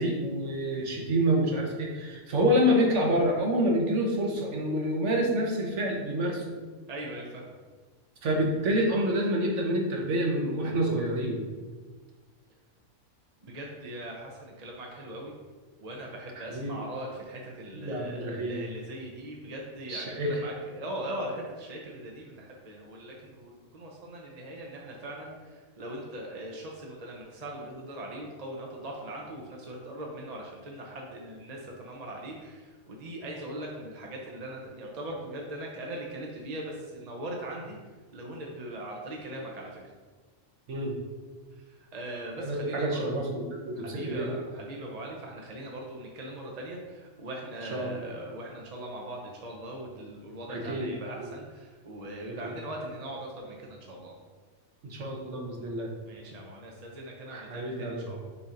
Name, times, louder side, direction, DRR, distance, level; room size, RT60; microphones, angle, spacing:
voice 1, 0.0-6.4 8.2-11.4 16.5-16.7 17.7-18.6 19.9-20.4 40.7-41.0 42.4-44.3 47.7-48.1 50.5-50.9 51.2-51.3 52.4-52.5 54.8-55.9 57.3-58.1, equal, 55° right, 0 dB, 1.3 m, -28 dB
voice 2, 6.9-7.4 13.4-15.3 15.8-37.8 38.1-39.9 41.6-43.1 43.8-54.2 56.0-58.3, right 1 dB, 40° right, -1 dB, 0.6 m, -40 dB
6.9 x 2.8 x 5.0 m, 1.4 s
omnidirectional pair, 1.5 m